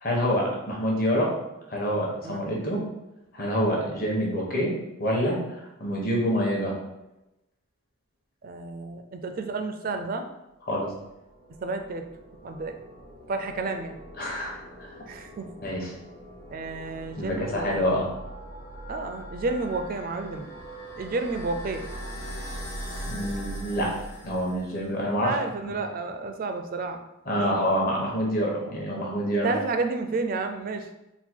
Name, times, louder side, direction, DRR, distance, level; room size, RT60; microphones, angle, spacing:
voice 1, 0.0-1.3 1.7-2.8 3.3-4.7 5.0-6.8 10.7-10.9 14.2-14.9 15.6-15.9 17.2-18.1 23.1-23.9 24.2-25.3 27.3-29.5, equal, 45° left, -2 dB, 1.0 m, -27 dB
voice 2, 8.4-10.3 11.6-12.1 12.4-12.8 13.3-14.0 15.1-15.5 15.8-15.9 16.5-18.1 18.9-20.5 21.0-21.9 25.2-27.0 27.3-27.6 29.4-30.9, right 3 dB, 45° right, 6 dB, 0.4 m, -31 dB
sound 1, 11.0-25.0, right 1 dB, 65° left, 1.3 m, -41 dB
3.7 x 2.2 x 4.4 m, 0.93 s
head